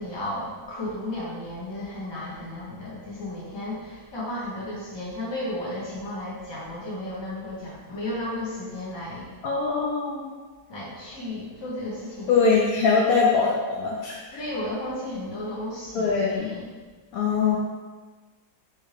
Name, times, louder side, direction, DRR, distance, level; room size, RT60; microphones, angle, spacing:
voice 1, 0.0-9.3 10.7-12.6 13.4-13.5 14.4-16.7, left 1 dB, 20° left, -6 dB, 0.7 m, -34 dB
voice 2, 9.4-10.3 12.3-14.4 15.9-16.5 17.1-17.6, left 5 dB, 85° left, -3 dB, 0.7 m, -22 dB
4.3 x 3.6 x 3.2 m, 1.3 s
omnidirectional pair, 2.1 m